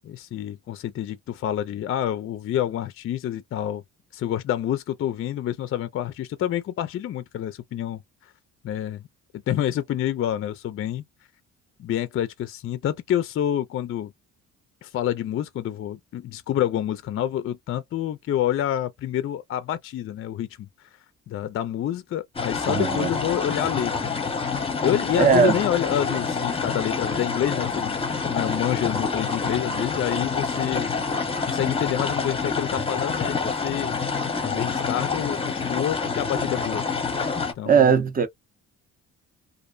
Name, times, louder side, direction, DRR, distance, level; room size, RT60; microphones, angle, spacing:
voice 1, 0.0-3.8 4.1-8.0 8.6-9.0 9.5-11.0 11.8-14.1 14.8-20.7 21.3-24.2 24.8-28.0 28.2-30.9 31.5-34.0 34.4-36.9 37.6-38.0, left 11 dB, 45° left, 0.4 m, -28 dB
sound 1, 22.3-37.5, left 4 dB, 20° left, 0.7 m, -27 dB
voice 2, 22.7-23.1 25.2-25.6 37.7-38.3, right 6 dB, 30° right, 0.6 m, -19 dB
2.5 x 2.1 x 2.4 m
cardioid pair, 90°, 30 cm